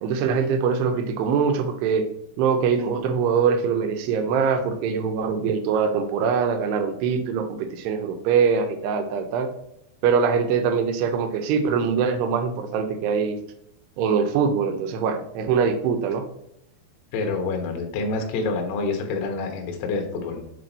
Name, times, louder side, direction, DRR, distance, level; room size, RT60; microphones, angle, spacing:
voice 1, 0.0-2.1 2.4-9.5 10.0-13.4 14.0-16.3, right 6 dB, 80° right, 7 dB, 2.6 m, -23 dB
voice 2, 17.1-20.4, left 3 dB, 75° left, 3 dB, 3.0 m, -27 dB
7.6 x 4.2 x 4.0 m, 0.78 s
omnidirectional pair, 5.1 m